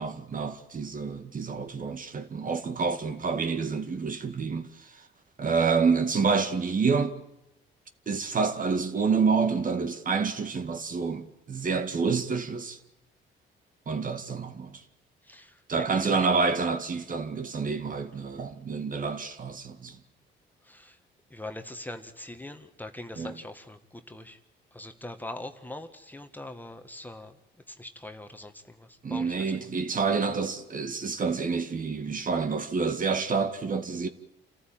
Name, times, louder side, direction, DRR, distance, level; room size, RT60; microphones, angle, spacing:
voice 1, 0.0-4.7 5.4-7.2 8.1-12.8 13.9-14.8 15.7-20.0 23.2-23.3 29.0-34.1, right 5 dB, 45° right, 2.1 m, -28 dB
voice 2, 15.2-16.3 20.6-21.0 21.3-24.4 24.7-27.4 27.7-29.6, left 1 dB, 10° left, 1.7 m, -42 dB
28.5 x 14.0 x 9.1 m
cardioid pair, 90°, 20 cm